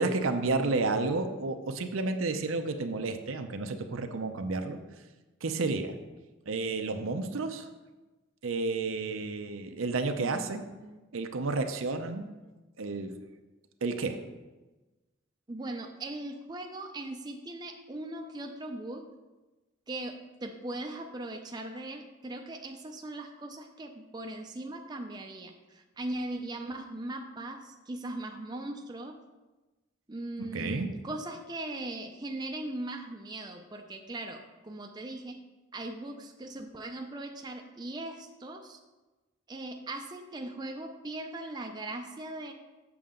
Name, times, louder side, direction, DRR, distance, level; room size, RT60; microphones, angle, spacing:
voice 1, 0.0-4.8 5.4-5.9 6.5-7.7 8.4-10.6 11.1-12.3 12.8-13.1 13.8-14.2 30.4-30.9, right 3 dB, 80° right, 7 dB, 0.6 m, -31 dB
voice 2, 10.2-11.0 15.5-19.0 19.9-29.1 30.1-35.4 35.7-38.8 39.5-42.5, right 2 dB, 20° right, 3 dB, 0.5 m, -39 dB
7.2 x 6.7 x 3.8 m, 1.2 s
head